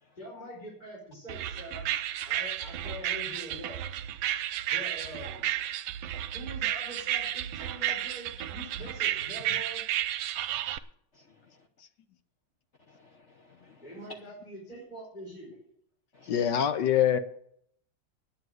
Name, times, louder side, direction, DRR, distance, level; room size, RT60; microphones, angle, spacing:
voice 1, 0.2-1.9 2.2-3.8 4.7-5.4 6.3-9.8 13.8-15.6 16.2-16.3, equal, 20° left, -4 dB, 4.5 m, -44 dB
sound 1, 1.3-10.8, right 12 dB, 85° right, 1.4 m, -32 dB
voice 2, 11.1-11.7 12.9-14.0 16.1-16.5, left 3 dB, 45° left, 1 dB, 1.1 m, -55 dB
voice 3, 16.3-17.2, left 9 dB, 65° left, 10 dB, 1.3 m, -24 dB
9.5 x 9.5 x 7.7 m, 0.70 s
omnidirectional pair, 2.1 m